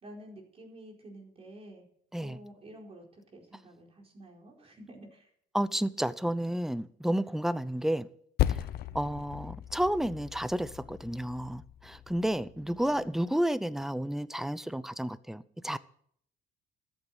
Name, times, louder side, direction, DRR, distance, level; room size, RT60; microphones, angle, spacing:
voice 1, 0.0-1.8 2.2-5.3 12.5-13.1, right 1 dB, 35° right, 4.6 m, -50 dB
voice 2, 5.5-8.1 8.5-8.6 8.9-15.8, right 1 dB, ahead, 0.7 m, -31 dB
Percussion, 8.4-13.2, left 13 dB, 70° left, 0.7 m, -36 dB
13.5 x 8.8 x 8.0 m
cardioid pair, 110°, 17 cm